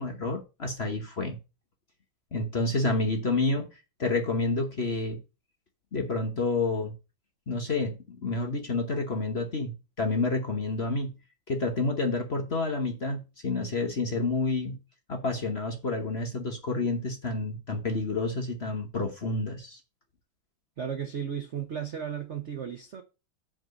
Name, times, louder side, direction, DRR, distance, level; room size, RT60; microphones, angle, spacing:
voice 1, 0.0-1.4 2.3-3.7 4.0-5.2 5.9-6.9 7.5-9.7 10.0-11.1 11.5-14.8 15.1-19.8, left 3 dB, 40° left, 1.1 m, -29 dB
voice 2, 20.8-23.0, right 8 dB, 60° right, 0.7 m, -34 dB
8.0 x 3.9 x 6.3 m
omnidirectional pair, 2.3 m